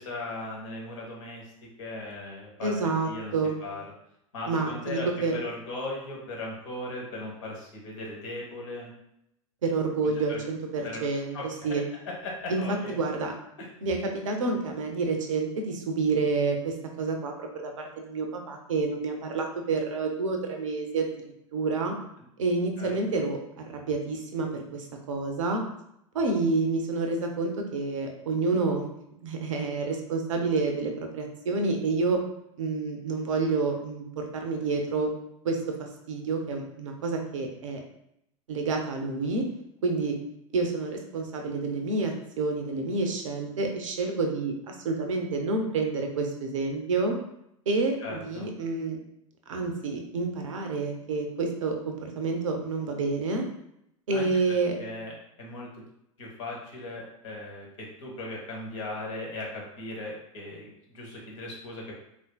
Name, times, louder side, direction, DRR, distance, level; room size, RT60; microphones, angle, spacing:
voice 1, 0.0-3.3 3.6-3.8 4.3-8.9 10.3-10.4 10.8-11.1 11.3-11.8 12.2-13.0 13.6-13.7 22.8-23.0 48.0-48.5 54.1-54.3 54.8-55.1 55.4-55.8 56.2-61.9, left 2 dB, 65° left, -2 dB, 1.0 m, -38 dB
voice 2, 2.6-3.5 4.5-5.4 9.6-11.8 12.5-12.6 12.9-13.3 13.8-21.1 21.5-22.0 22.4-25.6 26.1-28.9 29.2-32.2 32.6-35.1 35.4-37.8 38.5-39.5 39.8-40.2 40.5-47.1 47.7-49.0 49.5-53.4 54.1-54.8, right 3 dB, 65° right, 3 dB, 0.6 m, -29 dB
3.7 x 2.5 x 2.2 m, 0.78 s
figure-of-eight pair, 80°, 17 cm